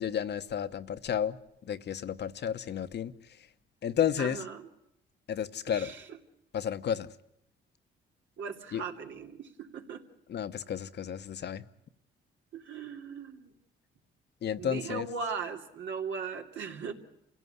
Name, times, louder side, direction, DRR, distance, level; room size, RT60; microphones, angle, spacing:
voice 1, 0.0-1.4 1.6-3.5 3.8-4.4 5.3-5.9 6.5-7.1 8.7-8.8 10.3-11.7 14.4-15.1, left 9 dB, 60° left, 1.2 m, -32 dB
voice 2, 4.2-4.7 5.7-6.0 8.4-10.0 12.5-13.5 14.6-16.9, right 5 dB, 70° right, 2.8 m, -38 dB
28.5 x 17.0 x 9.5 m
cardioid pair, 90°, 20 cm